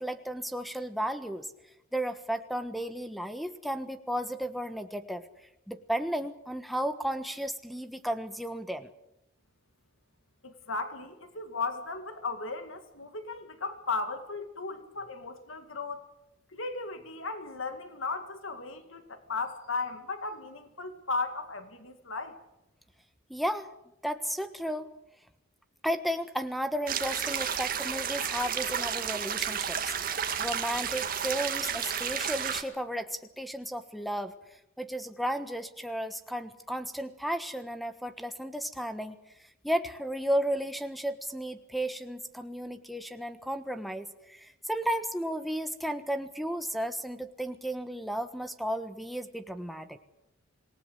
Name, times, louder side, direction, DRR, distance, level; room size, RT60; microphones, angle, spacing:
voice 1, 0.0-1.5 1.9-5.3 5.7-8.9 23.3-23.7 24.0-24.9 25.8-39.2 39.6-50.0, equal, ahead, 10 dB, 1.3 m, -34 dB
voice 2, 10.4-16.1 16.5-22.3, left 3 dB, 70° left, 8 dB, 2.1 m, -36 dB
sound 1, 26.9-32.6, right 8 dB, 40° right, 2.0 m, -32 dB
26.5 x 19.0 x 8.1 m, 0.85 s
head